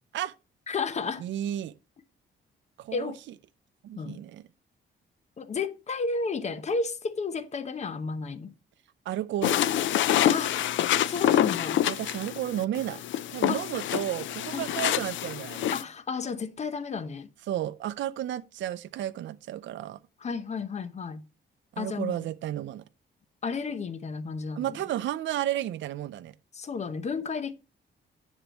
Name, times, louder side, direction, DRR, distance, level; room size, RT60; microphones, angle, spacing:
voice 1, 0.7-1.3 2.9-3.2 3.9-4.2 5.4-8.5 10.2-10.5 11.1-11.8 13.5-13.7 14.5-14.9 15.7-17.3 20.2-21.2 21.8-22.2 23.4-24.8 26.5-27.5, left 4 dB, 35° left, 0.8 m, -32 dB
voice 2, 1.2-1.7 2.8-3.1 3.8-4.4 9.1-9.6 11.9-13.0 13.3-15.7 17.5-20.0 21.7-22.8 24.6-26.3, right 12 dB, 75° right, 0.5 m, -32 dB
Footsteps Walking Socks on Carpet, 9.4-15.8, left 11 dB, 75° left, 0.5 m, -27 dB
10.0 x 7.4 x 3.0 m
cardioid pair, 145°, 20 cm